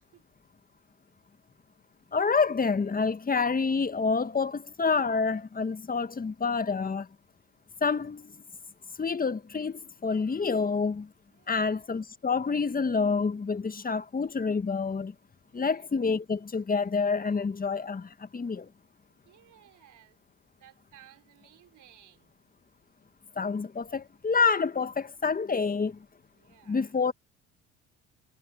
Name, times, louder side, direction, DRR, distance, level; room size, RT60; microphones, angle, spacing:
voice 1, 2.1-7.1 7.8-8.3 9.0-11.1 11.5-15.1 15.5-18.7 23.4-26.0 26.7-27.1, left 5 dB, 25° left, 1.7 m, -28 dB
voice 2, 11.3-11.8 15.5-15.8 19.1-20.2 20.6-22.4 26.3-26.9, right 11 dB, 55° right, 4.5 m, -58 dB
hypercardioid pair, 65°, 37 cm